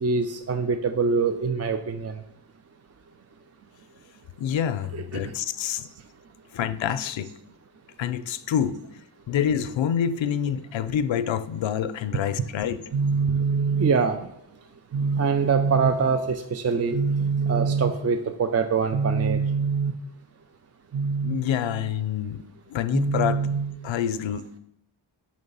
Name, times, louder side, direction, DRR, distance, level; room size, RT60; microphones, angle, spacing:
voice 1, 0.0-2.1 4.9-5.0 12.9-14.2 14.9-19.9 20.9-21.5 22.9-23.8, right 5 dB, 35° right, 8 dB, 0.4 m, -24 dB
voice 2, 4.4-5.9 6.5-7.3 8.0-8.8 9.3-12.8 21.2-22.4 22.7-23.5 23.8-24.6, left 9 dB, 65° left, 11 dB, 0.5 m, -27 dB
6.6 x 3.2 x 5.4 m, 0.74 s
wide cardioid pair, 60°, 50 cm